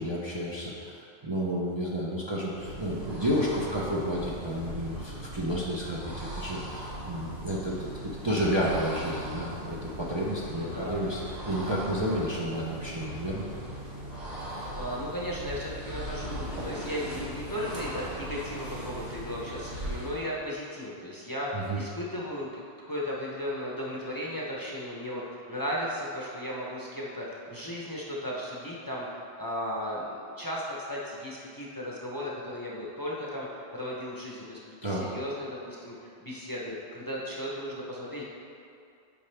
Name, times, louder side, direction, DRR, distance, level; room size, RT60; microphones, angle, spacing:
voice 1, 0.0-7.9 8.2-11.2 11.5-13.5 21.5-21.8 34.8-35.1, equal, 30° right, -6 dB, 0.7 m, -31 dB
sound 1, 2.5-20.3, right 1 dB, 85° right, 1.7 m, -39 dB
voice 2, 10.5-11.0 14.7-22.6 22.9-38.2, equal, 20° left, -5 dB, 0.8 m, -36 dB
8.7 x 4.9 x 3.4 m, 2.5 s
omnidirectional pair, 1.1 m